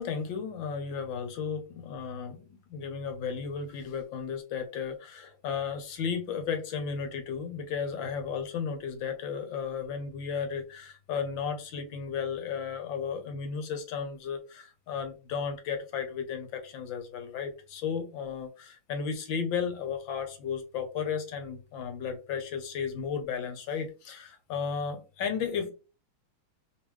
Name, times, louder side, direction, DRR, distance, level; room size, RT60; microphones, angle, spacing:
voice 1, 0.0-25.7, left 6 dB, 70° left, 6 dB, 1.5 m, -34 dB
3.6 x 3.5 x 3.1 m, 0.32 s
omnidirectional pair, 2.3 m